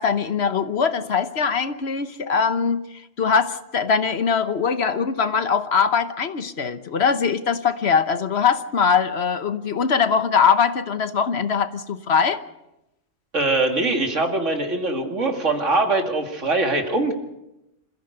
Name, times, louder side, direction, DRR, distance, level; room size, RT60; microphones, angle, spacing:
voice 1, 0.0-2.9 3.2-12.4, left 6 dB, 60° left, 11 dB, 1.2 m, -21 dB
voice 2, 13.3-17.1, right 2 dB, 75° right, 4 dB, 2.8 m, -22 dB
27.0 x 15.0 x 6.6 m, 0.91 s
omnidirectional pair, 1.3 m